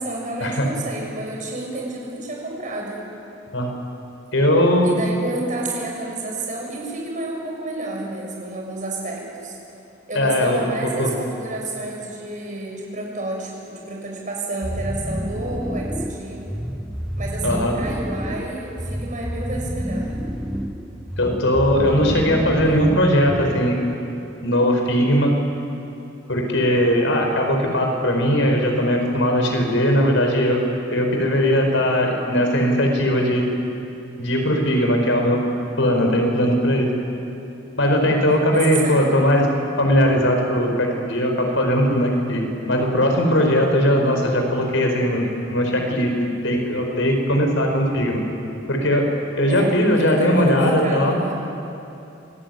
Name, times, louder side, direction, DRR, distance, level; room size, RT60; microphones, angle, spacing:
voice 1, 0.0-3.0 4.8-9.6 10.1-16.4 17.1-20.2 38.5-39.0 49.5-49.7 49.9-51.3, right 2 dB, 45° right, -1 dB, 6.9 m, -30 dB
voice 2, 4.3-4.9 10.1-10.7 11.0-11.1 17.4-17.7 21.2-23.8 24.4-25.3 26.3-30.6 30.9-33.4 34.2-35.4 35.8-36.9 37.7-39.5 39.8-48.2 48.7-49.0 49.4-51.2, equal, 80° left, 2 dB, 4.8 m, -19 dB
sound 1, 14.6-23.8, equal, 5° right, 0.9 m, -29 dB
26.0 x 19.0 x 9.3 m, 2.7 s
head